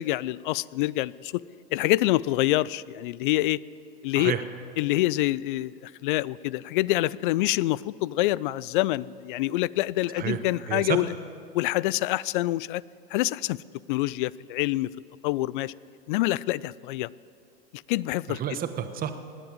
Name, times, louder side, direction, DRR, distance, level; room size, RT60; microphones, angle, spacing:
voice 1, 0.0-1.4 1.7-3.6 4.0-4.3 4.8-11.1 11.5-12.8 13.1-13.6 13.9-14.9 15.2-15.7 16.1-17.1 17.7-18.4, left 17 dB, 55° left, 22 dB, 0.4 m, -26 dB
voice 2, 10.7-11.0 18.3-19.1, right 10 dB, 30° right, 9 dB, 1.2 m, -29 dB
19.0 x 8.1 x 8.8 m, 2.4 s
hypercardioid pair, 105°, 30 cm